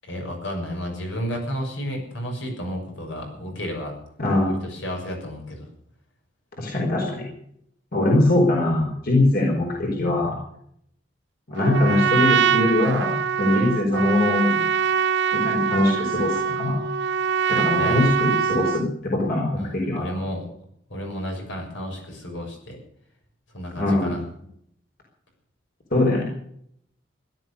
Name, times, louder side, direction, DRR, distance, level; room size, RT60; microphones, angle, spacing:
voice 1, 0.0-4.0 4.5-5.7 17.7-18.2 19.5-20.5 20.9-22.8 23.5-24.2, equal, 75° left, 2 dB, 6.6 m, -32 dB
voice 2, 4.2-4.6 6.6-7.2 7.9-10.4 11.5-14.6 15.3-16.8 17.5-20.1 23.7-24.1 25.9-26.2, left 1 dB, 55° left, -1 dB, 4.7 m, -22 dB
Trumpet, 11.6-18.9, right 7 dB, 65° right, 0.9 m, -23 dB
17.0 x 12.0 x 6.9 m, 0.69 s
head